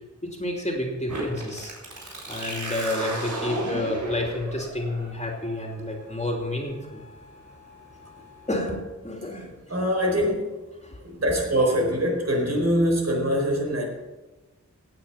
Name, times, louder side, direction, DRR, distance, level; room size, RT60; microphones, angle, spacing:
voice 1, 0.2-1.7 2.3-7.0 8.5-9.5 10.8-11.0, left 1 dB, 25° left, 1 dB, 2.8 m, -30 dB
sound 1, 1.1-8.6, right 1 dB, 80° right, 4.3 m, -36 dB
voice 2, 9.7-10.6 11.0-13.9, equal, 60° right, 1 dB, 4.5 m, -23 dB
17.0 x 9.3 x 5.7 m, 1.1 s
wide cardioid pair, 85°, 29 cm